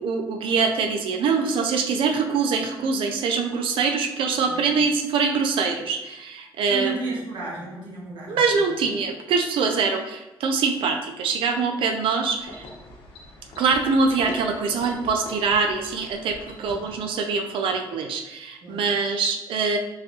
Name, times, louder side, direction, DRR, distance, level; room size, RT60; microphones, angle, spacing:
voice 1, 0.0-7.0 8.3-12.6 13.6-19.8, right 5 dB, 80° right, 5 dB, 0.4 m, -24 dB
voice 2, 6.7-8.4 16.6-16.8 18.6-18.8, right 3 dB, 65° right, -5 dB, 1.5 m, -33 dB
sound 1, 12.3-17.1, left 2 dB, 85° left, 0.9 m, -43 dB
4.0 x 3.4 x 2.7 m, 1.0 s
cardioid pair, 110°, 9 cm